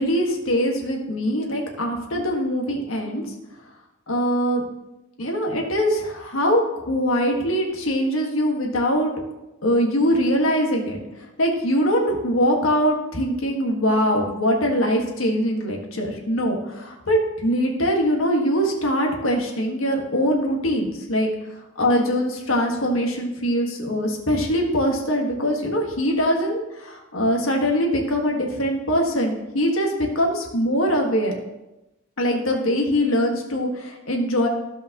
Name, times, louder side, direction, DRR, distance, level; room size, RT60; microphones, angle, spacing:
voice 1, 0.0-3.2 4.1-4.6 5.2-6.6 6.9-9.1 9.6-11.0 11.4-21.3 21.8-31.4 32.2-34.5, equal, 80° left, 1 dB, 1.7 m, -22 dB
15.0 x 5.4 x 3.0 m, 0.99 s
head